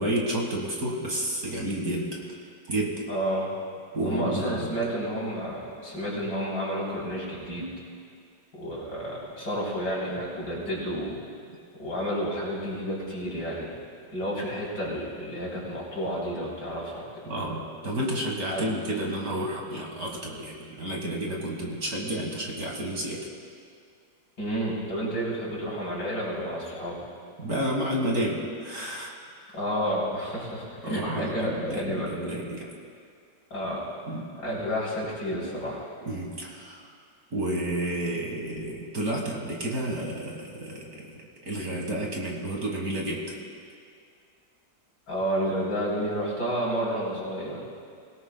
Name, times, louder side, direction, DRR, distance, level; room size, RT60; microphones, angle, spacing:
voice 1, 0.0-3.1 3.9-4.7 17.3-23.3 27.4-29.2 30.8-32.7 34.1-34.3 36.0-36.8 37.3-41.2 41.4-43.4, right 1 dB, 50° right, -1 dB, 2.1 m, -31 dB
voice 2, 3.1-3.5 4.1-7.7 8.6-11.2 11.8-13.8 14.1-17.2 18.5-18.6 24.4-27.0 29.5-32.1 33.5-33.9 34.4-35.8 45.1-47.6, equal, 55° left, -5 dB, 4.0 m, -30 dB
23.5 x 17.0 x 2.2 m, 2.3 s
omnidirectional pair, 2.1 m